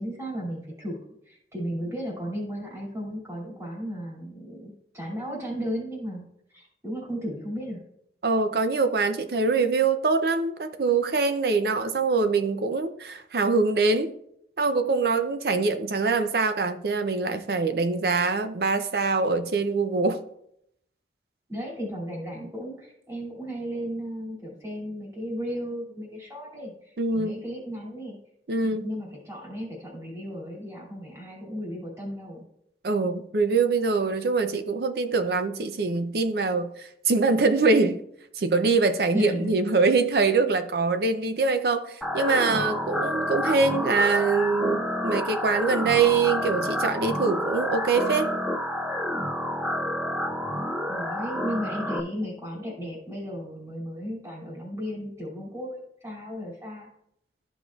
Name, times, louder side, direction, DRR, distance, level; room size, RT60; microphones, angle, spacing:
voice 1, 0.0-7.8 21.5-28.2 28.6-32.4 39.1-39.5 50.9-56.9, equal, 15° right, -4 dB, 2.5 m, -35 dB
voice 2, 8.2-14.1 14.6-20.2 27.0-27.4 28.5-28.8 32.8-38.0 38.4-48.3, right 4 dB, 60° right, 9 dB, 0.5 m, -24 dB
sound 1, 42.0-52.0, equal, ahead, 0.4 m, -29 dB
13.0 x 5.4 x 2.4 m, 0.74 s
head